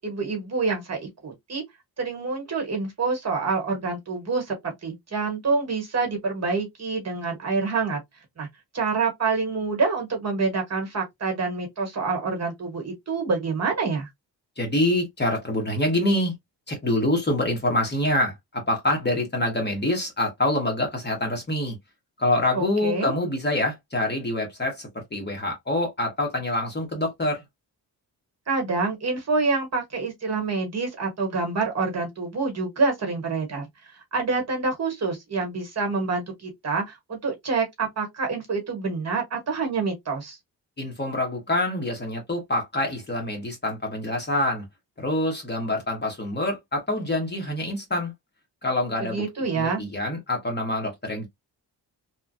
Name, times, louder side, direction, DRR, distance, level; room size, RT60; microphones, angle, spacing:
voice 1, 0.0-1.6 2.0-8.0 8.4-8.5 8.7-14.1 22.5-23.1 28.5-33.6 34.1-40.4 49.0-49.9, right 4 dB, 40° right, 1.2 m, -27 dB
voice 2, 14.6-16.3 16.7-21.8 22.2-27.4 40.8-44.6 45.0-48.1 48.6-49.2 49.5-51.3, left 1 dB, 25° left, 1.1 m, -26 dB
2.9 x 2.3 x 2.5 m
wide cardioid pair, 140°, 40 cm